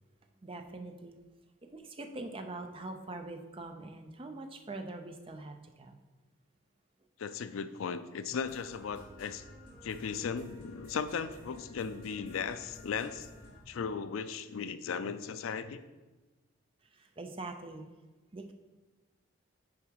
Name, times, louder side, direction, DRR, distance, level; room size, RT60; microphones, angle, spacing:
voice 1, 0.4-1.2 1.7-6.0 16.9-17.9 18.3-18.5, right 2 dB, 25° right, 5 dB, 0.5 m, -43 dB
voice 2, 7.2-9.4 9.8-13.3 13.7-15.8, left 6 dB, 75° left, 12 dB, 0.4 m, -37 dB
sound 1, 8.4-13.6, left 1 dB, 45° left, 2.4 m, -53 dB
7.2 x 4.7 x 4.7 m, 1.2 s
head